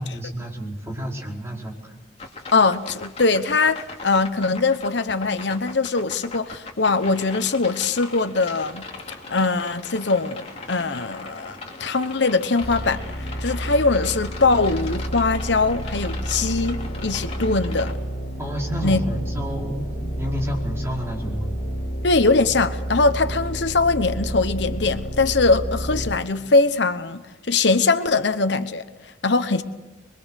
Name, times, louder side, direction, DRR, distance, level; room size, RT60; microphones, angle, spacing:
voice 1, 0.0-1.9 18.4-21.5, equal, 15° right, -2 dB, 5.0 m, -30 dB
sound 1, 2.2-17.9, left 3 dB, 35° left, 2.9 m, -39 dB
voice 2, 2.5-8.9 9.3-13.0 13.4-17.9 18.8-19.0 22.0-27.2 27.5-29.6, left 3 dB, 75° left, 10 dB, 1.1 m, -21 dB
sound 2, 12.6-26.2, equal, 55° left, 7.6 m, -30 dB
26.5 x 22.5 x 6.5 m, 1.1 s
head